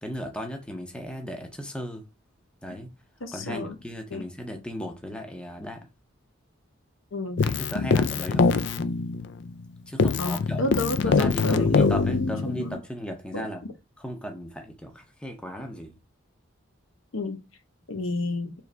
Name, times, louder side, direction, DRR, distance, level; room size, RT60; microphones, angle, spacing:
voice 1, 0.0-2.0 2.6-2.9 3.3-5.9 7.4-8.5 9.9-10.6 11.1-13.6 14.0-16.0, equal, 5° left, 0.6 m, -36 dB
voice 2, 3.2-3.8 4.1-4.2 7.1-7.4 10.2-12.8 13.3-13.5 17.1-17.4 17.9-18.5, left 2 dB, 70° left, 0.8 m, -31 dB
Keyboard (musical), 7.4-9.7 10.0-12.8, left 4 dB, 55° left, 0.3 m, -24 dB
3.3 x 3.2 x 3.8 m
head